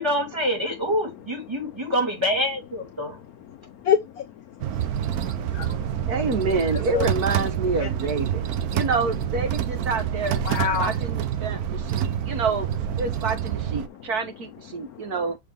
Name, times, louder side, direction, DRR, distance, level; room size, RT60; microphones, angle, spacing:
voice 1, 0.0-3.2, equal, 10° right, 3.2 m, -26 dB
voice 2, 3.5-4.2 4.6-5.2 5.5-5.7 6.9-7.1 7.8-7.9 10.4-10.9 12.1-12.3 14.7-15.1, left 7 dB, 80° left, 0.8 m, -27 dB
sound 1, 4.6-13.9, right 10 dB, 70° right, 0.8 m, -27 dB
voice 3, 6.1-8.4 8.7-10.4 10.8-15.3, right 4 dB, 50° right, 1.5 m, -27 dB
6.6 x 4.5 x 3.5 m
omnidirectional pair, 2.3 m